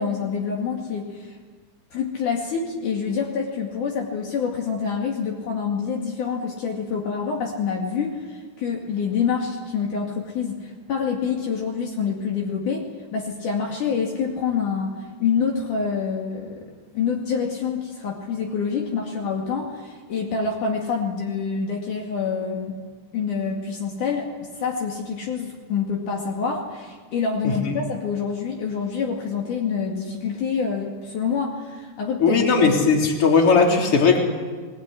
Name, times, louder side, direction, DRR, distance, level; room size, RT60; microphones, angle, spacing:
voice 1, 0.0-1.4 1.9-16.7 16.9-22.8 23.1-24.3 24.6-32.4, left 6 dB, 65° left, 0 dB, 3.7 m, -26 dB
voice 2, 32.2-34.3, left 4 dB, 40° left, 1 dB, 4.1 m, -17 dB
22.0 x 20.5 x 9.9 m, 1.5 s
omnidirectional pair, 3.9 m